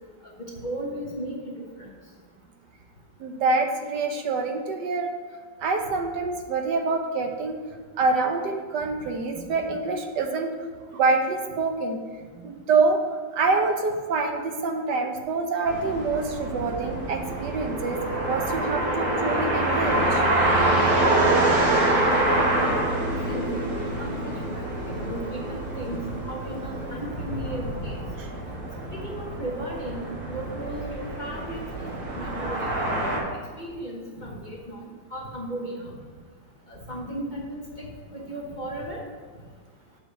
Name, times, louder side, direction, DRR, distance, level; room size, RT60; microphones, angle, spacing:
voice 1, 0.4-1.5 1.8-1.9 20.9-22.8 23.3-23.6 24.0-28.1 28.9-31.6 32.1-33.2 33.6-34.8 35.1-35.9 36.7-37.6 38.1-39.0, right 1 dB, 30° left, -3 dB, 1.1 m, -35 dB
voice 2, 3.2-5.1 5.6-7.6 8.0-10.5 10.9-12.0 12.4-13.0 13.3-18.0 18.3-20.2, right 3 dB, 70° right, 4 dB, 1.4 m, -26 dB
sound 1, 15.6-33.2, right 1 dB, 45° right, 2.0 m, -26 dB
7.4 x 5.0 x 7.1 m, 1.5 s
omnidirectional pair, 2.0 m